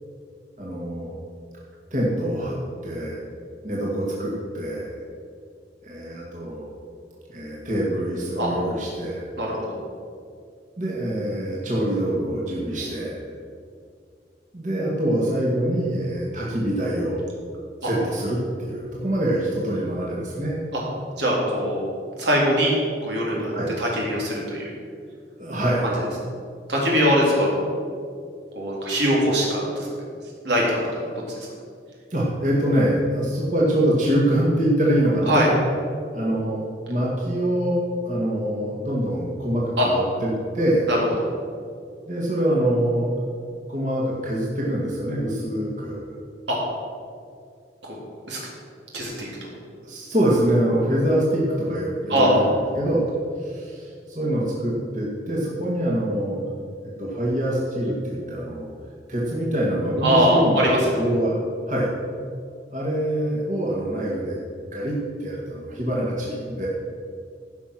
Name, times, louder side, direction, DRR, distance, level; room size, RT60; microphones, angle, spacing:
voice 1, 0.6-1.2 1.9-2.6 2.8-3.2 3.6-4.9 5.8-6.7 7.3-9.2 10.8-13.2 14.5-17.2 17.8-20.6 23.5-23.7 25.4-25.8 32.1-35.4 36.1-37.8 38.0-40.3 40.5-40.9 42.1-43.1 43.7-46.0 49.8-52.5 52.8-53.1 53.4-56.4 57.0-58.7 59.1-61.4 61.7-61.9 62.7-64.4 64.7-66.7, right 1 dB, 45° right, -5 dB, 2.2 m, -24 dB
voice 2, 9.4-9.8 17.8-17.9 20.7-20.8 21.2-21.8 22.2-22.7 23.0-24.6 25.8-26.0 26.7-27.7 28.6-29.9 30.4-31.0 31.4-31.5 35.3-35.5 39.8-39.9 40.9-41.0 46.5-46.6 47.8-48.0 48.3-48.4 48.9-49.5 52.1-52.3 60.0-61.0, equal, 85° right, -3 dB, 3.6 m, -22 dB
16.0 x 6.0 x 6.2 m, 2.2 s
head